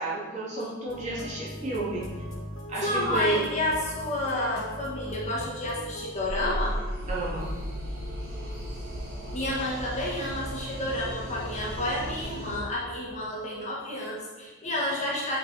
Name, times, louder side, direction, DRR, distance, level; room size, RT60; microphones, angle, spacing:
voice 1, 0.0-2.1 2.7-3.4 7.1-7.5, right 2 dB, 35° right, -7 dB, 2.4 m, -31 dB
sound 1, 0.9-6.1, equal, 65° left, 1.1 m, -39 dB
voice 2, 2.8-6.8 9.3-15.4, left 1 dB, 35° left, -4 dB, 1.7 m, -30 dB
sound 2, 6.2-12.6, equal, 85° right, 2.6 m, -35 dB
7.2 x 5.7 x 5.0 m, 1.2 s
head